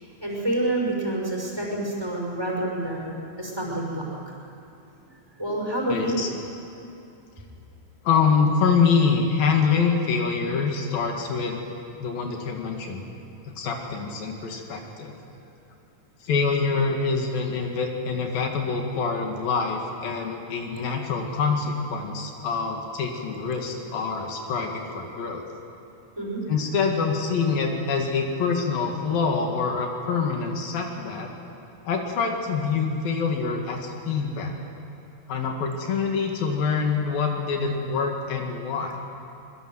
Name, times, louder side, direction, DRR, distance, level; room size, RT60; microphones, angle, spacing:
voice 1, 0.0-4.4 5.4-6.2 26.2-26.4, right 1 dB, 5° right, -2 dB, 5.6 m, -28 dB
voice 2, 5.9-6.3 8.0-11.6 12.0-13.0 13.6-15.1 16.2-25.5 26.5-31.3 31.9-34.6 35.3-39.0, left 5 dB, 75° left, 2 dB, 3.9 m, -25 dB
25.0 x 22.5 x 7.9 m, 2.8 s
omnidirectional pair, 4.1 m